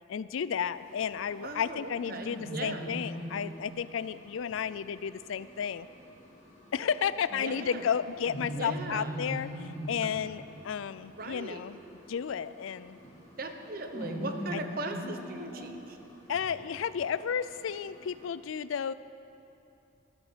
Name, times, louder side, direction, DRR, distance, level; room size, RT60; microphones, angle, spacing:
voice 1, 0.1-5.9 6.7-11.8 12.1-13.0 14.5-14.6 16.3-18.9, left 7 dB, 75° left, 16 dB, 0.4 m, -32 dB
sound 1, 0.7-18.3, equal, 35° left, 3.4 m, -43 dB
voice 2, 1.4-2.9 7.3-7.9 8.5-9.1 11.0-11.6 13.4-16.0, right 2 dB, 45° right, 6 dB, 0.9 m, -39 dB
13.5 x 13.5 x 5.1 m, 2.9 s
head